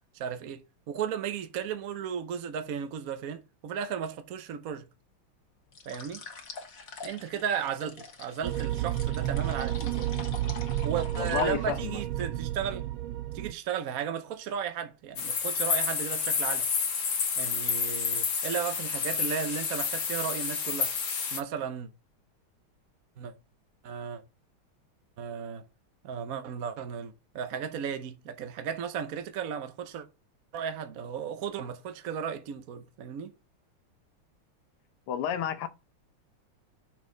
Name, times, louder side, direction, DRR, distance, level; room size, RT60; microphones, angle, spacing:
voice 1, 0.1-4.8 5.8-6.2 7.0-10.1 10.8-12.8 13.3-16.7 17.4-20.9 21.3-21.9 23.2-23.3 23.8-24.2 25.2-25.6 26.0-30.1 30.5-33.3, right 8 dB, 60° right, 0.9 m, -35 dB
sound 1, 5.7-11.9, left 4 dB, 45° left, 1.5 m, -43 dB
sound 2, 8.4-13.5, right 13 dB, 75° right, 1.3 m, -31 dB
voice 2, 11.1-12.0 35.1-35.7, left 9 dB, 85° left, 1.8 m, -31 dB
sound 3, 15.2-21.4, left 6 dB, 65° left, 1.9 m, -30 dB
6.2 x 6.2 x 3.9 m
omnidirectional pair, 2.4 m